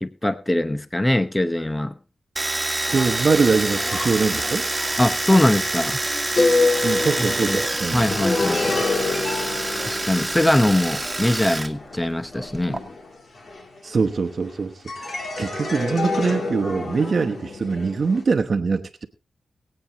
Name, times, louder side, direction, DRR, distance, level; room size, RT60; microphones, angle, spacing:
voice 1, 0.0-1.9 5.0-6.0 7.4-7.6 7.9-8.8 9.9-12.8, left 1 dB, 15° left, 10 dB, 0.8 m, -22 dB
Domestic sounds home sounds, 2.4-11.7 11.9-12.8, right 2 dB, 20° right, 1.7 m, -27 dB
sound 1, 2.9-14.5 14.9-18.2, left 3 dB, 60° left, 2.9 m, -28 dB
voice 2, 2.9-4.7 6.8-8.1 13.8-19.1, right 4 dB, 55° right, 4 dB, 1.0 m, -23 dB
22.5 x 8.8 x 2.9 m, 0.32 s
cardioid pair, 70°, 0 cm